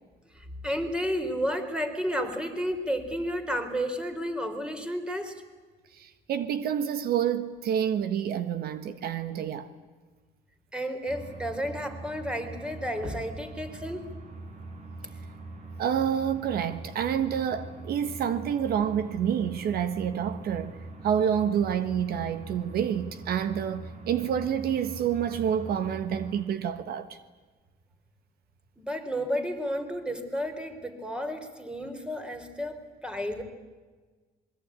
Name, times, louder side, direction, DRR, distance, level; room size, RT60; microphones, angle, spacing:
voice 1, 0.3-5.4 10.7-14.0 28.8-33.4, equal, 5° right, 3.7 m, -32 dB
voice 2, 6.0-9.7 15.8-20.8 21.0-27.2, right 8 dB, 65° right, 1.4 m, -28 dB
sound 1, 11.1-26.4, right 2 dB, 45° right, 5.4 m, -43 dB
26.5 x 21.5 x 9.7 m
cardioid pair, 110°, 17 cm